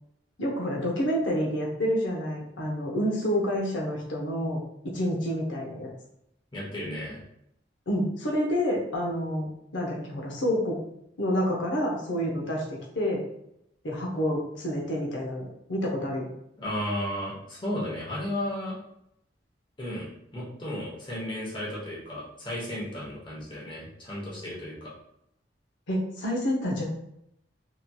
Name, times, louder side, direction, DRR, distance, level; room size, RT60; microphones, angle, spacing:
voice 1, 0.4-4.6 4.9-5.9 7.9-10.8 11.2-13.2 13.8-16.3 25.9-26.8, equal, 85° left, -2 dB, 0.7 m, -28 dB
voice 2, 6.5-7.2 16.6-18.8 19.8-24.9, left 1 dB, 25° left, -5 dB, 0.9 m, -34 dB
3.0 x 2.7 x 2.2 m, 0.77 s
head